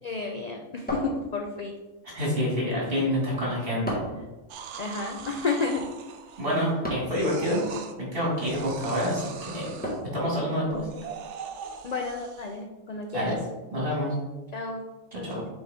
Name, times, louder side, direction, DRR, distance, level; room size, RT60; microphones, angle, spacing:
voice 1, 0.0-1.8 4.8-5.9 11.8-13.4 14.5-14.9 15.1-15.5, left 4 dB, 65° left, 3 dB, 0.4 m, -31 dB
sound 1, 0.9-1.8 3.9-4.3 6.8-7.3 9.8-10.3, equal, 5° left, 1.3 m, -33 dB
voice 2, 2.1-4.0 6.4-7.6 8.0-9.8 10.1-10.8 13.1-13.4 13.7-14.1 15.1-15.4, equal, 45° right, -5 dB, 2.4 m, -27 dB
sound 2, 4.5-6.7 7.1-7.9 8.4-10.0 10.7-12.6 13.2-13.4, right 7 dB, 70° right, 0.8 m, -41 dB
6.6 x 4.1 x 3.6 m, 1.1 s
omnidirectional pair, 1.3 m